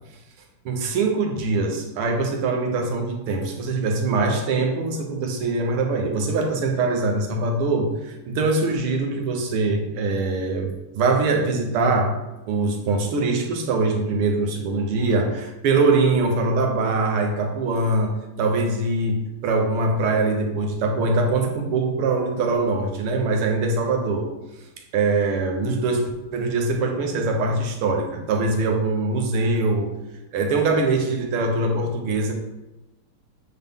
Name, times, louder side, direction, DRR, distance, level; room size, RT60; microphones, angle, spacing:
voice 1, 0.7-12.2 12.5-24.3 24.9-29.9 30.3-32.3, right 3 dB, 80° right, 2 dB, 1.8 m, -23 dB
7.8 x 4.0 x 3.5 m, 1.0 s
omnidirectional pair, 2.4 m